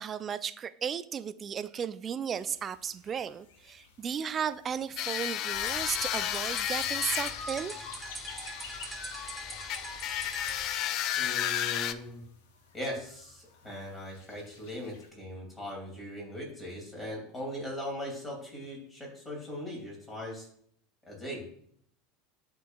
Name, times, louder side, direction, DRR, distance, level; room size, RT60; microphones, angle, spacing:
voice 1, 0.0-7.7, right 7 dB, 30° right, 0.3 m, -35 dB
sound 1, 2.4-15.1, left 3 dB, 65° left, 0.8 m, -50 dB
sound 2, 5.0-11.9, left 11 dB, 45° left, 0.3 m, -33 dB
sound 3, 5.5-10.7, right 2 dB, 10° right, 0.9 m, -44 dB
voice 2, 11.2-12.2 12.7-20.5 21.1-21.4, left 1 dB, 15° left, 2.9 m, -39 dB
11.0 x 3.8 x 2.5 m
figure-of-eight pair, 80°, 0 cm